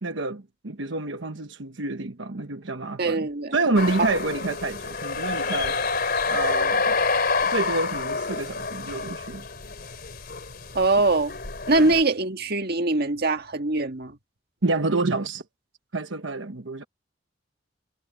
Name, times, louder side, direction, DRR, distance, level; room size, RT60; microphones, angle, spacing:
voice 1, 0.0-3.2 3.5-5.8 6.3-6.9 7.4-9.4 11.7-11.9 14.6-15.4 15.9-16.9, right 3 dB, 75° right, 1.2 m, -28 dB
voice 2, 3.0-3.6 10.7-11.3 11.7-14.2, right 2 dB, 55° right, 1.7 m, -22 dB
sound 1, 3.8-12.0, left 4 dB, 55° left, 3.3 m, -28 dB
head